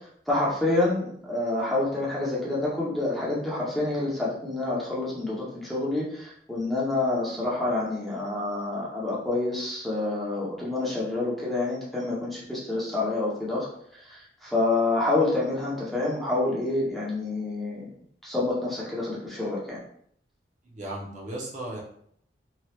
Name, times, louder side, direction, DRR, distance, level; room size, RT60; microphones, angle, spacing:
voice 1, 0.3-13.7 13.9-17.9 18.2-19.8, left 2 dB, ahead, -6 dB, 0.7 m, -28 dB
voice 2, 20.6-21.8, right 1 dB, 45° right, -4 dB, 0.8 m, -36 dB
2.9 x 2.3 x 3.1 m, 0.65 s
head